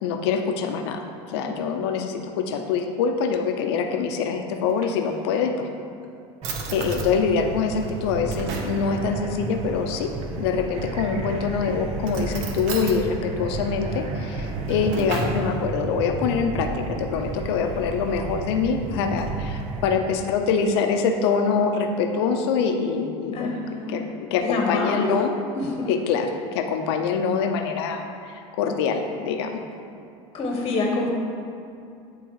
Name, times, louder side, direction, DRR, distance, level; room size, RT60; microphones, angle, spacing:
voice 1, 0.0-1.0 1.3-5.7 6.7-10.1 10.4-25.3 25.9-29.6, left 5 dB, 85° left, 5 dB, 0.7 m, -25 dB
Drawer open or close, 4.5-5.5 6.0-6.1 6.4-7.1 7.7-8.8 10.7-11.2 12.0-13.0 14.4-15.4, right 4 dB, 70° right, 1.0 m, -36 dB
sound 1, 6.4-19.9, right 3 dB, 50° right, 0.9 m, -32 dB
voice 2, 23.3-24.0 24.4-25.2 25.5-25.9 30.3-31.1, left 2 dB, 40° left, 1 dB, 1.2 m, -26 dB
10.5 x 3.8 x 4.8 m, 2.6 s
supercardioid pair, 105°, 13 cm